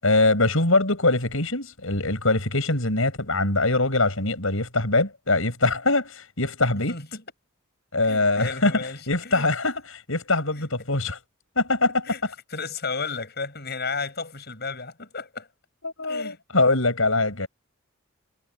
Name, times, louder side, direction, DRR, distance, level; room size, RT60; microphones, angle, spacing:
voice 1, 0.0-6.9 7.9-8.8 9.1-11.2 11.6-12.1 15.8-17.5, left 2 dB, 75° left, 7.2 m, -23 dB
voice 2, 6.9-7.2 8.1-9.5 10.6-10.7 12.0-12.2 12.5-15.5 16.0-16.4, left 4 dB, 50° left, 7.8 m, -33 dB
head